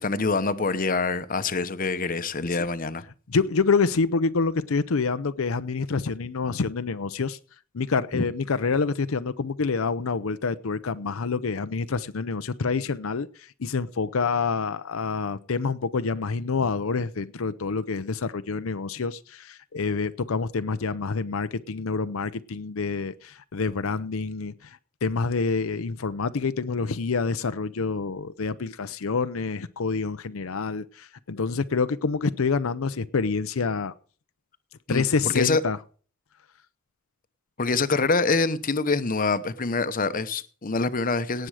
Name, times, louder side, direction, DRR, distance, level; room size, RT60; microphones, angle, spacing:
voice 1, 0.0-3.0 8.1-8.2 34.9-35.0 35.3-35.6 37.6-41.5, left 3 dB, 40° left, 0.9 m, -25 dB
voice 2, 3.3-7.4 7.7-33.9 34.9-35.8, left 4 dB, 80° left, 0.7 m, -27 dB
18.0 x 7.7 x 4.9 m
head